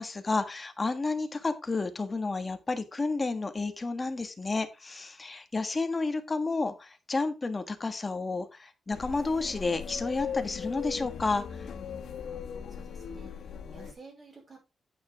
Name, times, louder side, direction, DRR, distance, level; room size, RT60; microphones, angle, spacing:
voice 1, 0.0-11.4, left 3 dB, 25° left, 8 dB, 1.6 m, -31 dB
sound 1, 8.9-13.9, left 7 dB, 80° left, 2.0 m, -39 dB
voice 2, 12.7-14.6, right 3 dB, 40° right, 2 dB, 5.2 m, -52 dB
9.5 x 9.0 x 3.5 m, 0.26 s
wide cardioid pair, 155°, 0 cm